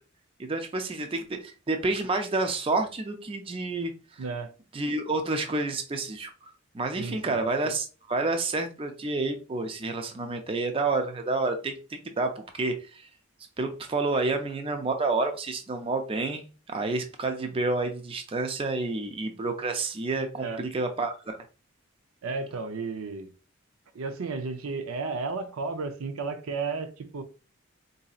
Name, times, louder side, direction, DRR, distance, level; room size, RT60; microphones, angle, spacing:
voice 1, 0.4-4.2 4.7-13.1 13.6-21.4, right 3 dB, 25° right, 0.4 m, -29 dB
voice 2, 4.2-4.5 7.0-7.4 20.4-20.6 22.2-23.3 23.9-27.2, right 4 dB, 90° right, 0.5 m, -33 dB
4.0 x 2.7 x 2.3 m
head